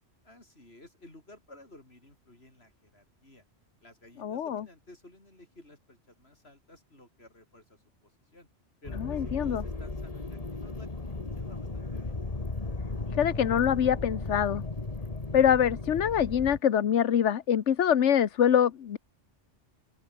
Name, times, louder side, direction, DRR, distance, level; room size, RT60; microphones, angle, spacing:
voice 1, 0.2-3.4 3.8-8.5 8.8-12.1, left 1 dB, 60° left, 6.7 m, -55 dB
voice 2, 4.2-4.6 9.1-9.6 13.2-14.6 15.3-19.0, left 9 dB, 85° left, 1.3 m, -24 dB
sound 1, 8.8-16.6, left 3 dB, 30° left, 1.8 m, -36 dB
omnidirectional pair, 1.2 m